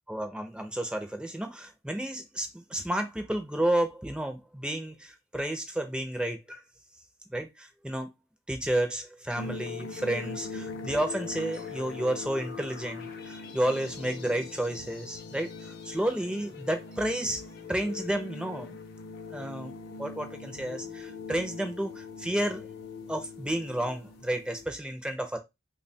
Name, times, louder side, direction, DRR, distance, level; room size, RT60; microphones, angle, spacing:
voice 1, 0.1-6.6 7.3-8.1 8.5-17.4 17.7-18.7 19.3-19.7 20.0-22.7 23.1-25.4, right 1 dB, 5° right, 0.5 m, -31 dB
sound 1, 9.4-24.7, left 5 dB, 50° left, 0.5 m, -41 dB
3.2 x 2.3 x 4.1 m
head